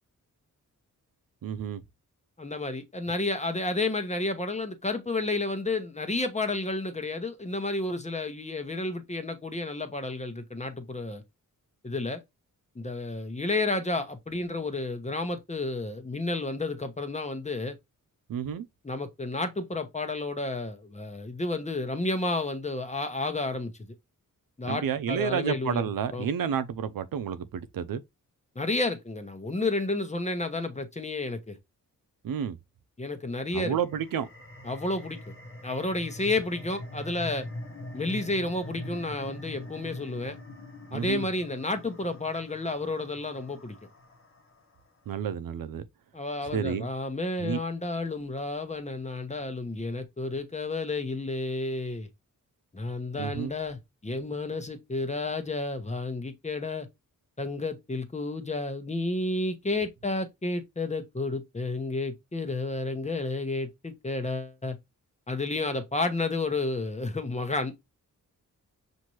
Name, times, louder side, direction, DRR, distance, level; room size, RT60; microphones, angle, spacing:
voice 1, 1.4-1.8 18.3-18.7 24.7-28.0 32.2-32.6 33.5-34.3 40.9-41.3 45.1-45.9 46.5-46.9 47.4-47.6 53.2-53.5, right 8 dB, 80° right, 0.6 m, -30 dB
voice 2, 2.4-11.2 11.8-12.2 12.8-17.8 18.8-23.7 24.6-26.3 28.5-31.6 33.0-33.8 34.6-35.3 35.6-37.5 37.9-40.4 40.9-43.7 46.1-52.1 52.7-56.9 57.4-64.8 65.3-67.7, left 2 dB, 20° left, 0.9 m, -31 dB
sound 1, 33.7-44.9, left 1 dB, 40° left, 1.2 m, -43 dB
5.9 x 2.7 x 3.0 m
wide cardioid pair, 90°, 34 cm